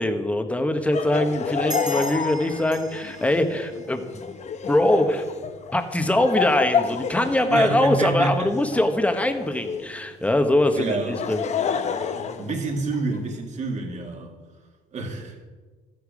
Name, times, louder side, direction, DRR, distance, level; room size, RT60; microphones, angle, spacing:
voice 1, 0.0-4.3 4.7-5.2 5.7-11.4, left 1 dB, 10° left, 6 dB, 1.2 m, -22 dB
Laughter, 0.9-10.0 10.8-13.2, left 6 dB, 45° left, 0.8 m, -30 dB
sound 1, 1.7-4.8, right 3 dB, 25° right, 1.1 m, -39 dB
voice 2, 7.5-8.5 10.7-11.2 12.1-14.4 14.9-15.4, right 3 dB, 45° right, 2 dB, 2.3 m, -28 dB
13.5 x 8.5 x 5.1 m, 1.4 s
cardioid pair, 110°, 17 cm